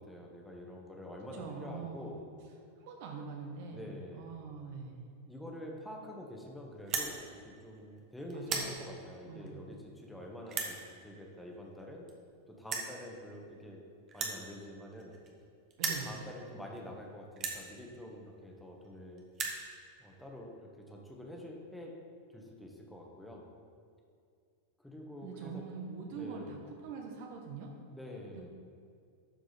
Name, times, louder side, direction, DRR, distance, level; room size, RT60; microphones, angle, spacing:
voice 1, 0.0-2.2 3.7-4.5 5.3-12.1 12.5-13.8 14.1-15.2 15.9-19.3 20.0-21.9 22.3-23.5 24.8-25.6 26.1-26.6 27.9-28.5, left 1 dB, 5° left, -1 dB, 1.5 m, -47 dB
voice 2, 1.3-2.2 2.8-5.1 8.3-8.8 9.2-9.7 15.8-16.2 25.2-27.8 28.3-28.5, right 5 dB, 50° right, 2 dB, 1.0 m, -44 dB
sound 1, 6.8-7.1 7.8-8.0 8.3-8.7 9.5-9.6 10.5-10.7 11.8-11.9 12.1-12.2 12.7-12.9 14.1-15.4 15.7-16.1 16.8-16.9 17.4-17.6 18.5-18.6 18.8-18.9 19.2-19.6, right 5 dB, 30° right, 1.2 m, -35 dB
11.5 x 4.8 x 4.2 m, 2.3 s
figure-of-eight pair, 90°, 0 cm